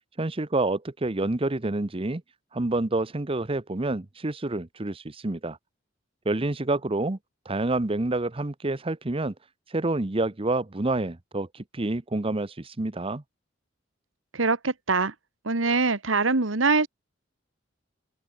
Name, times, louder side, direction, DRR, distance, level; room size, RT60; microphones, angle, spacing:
voice 1, 0.2-2.2 2.5-5.6 6.2-7.2 7.5-9.3 9.7-13.2, right 2 dB, 30° right, 0.9 m, -28 dB
voice 2, 14.3-15.1 15.4-16.9, right 3 dB, 90° right, 1.7 m, -23 dB
head